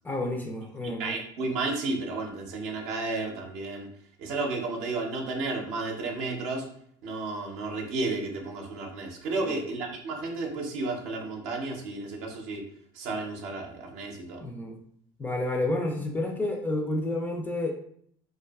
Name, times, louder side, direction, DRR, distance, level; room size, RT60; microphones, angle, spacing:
voice 1, 0.0-1.2 9.4-9.6 14.4-14.8 15.2-17.7, left 2 dB, 15° left, 1 dB, 0.3 m, -30 dB
voice 2, 1.0-3.9 4.2-6.7 7.0-12.7 12.9-14.4, right 3 dB, 65° right, 1 dB, 0.6 m, -32 dB
2.5 x 2.3 x 2.3 m, 0.65 s
supercardioid pair, 110°, 11 cm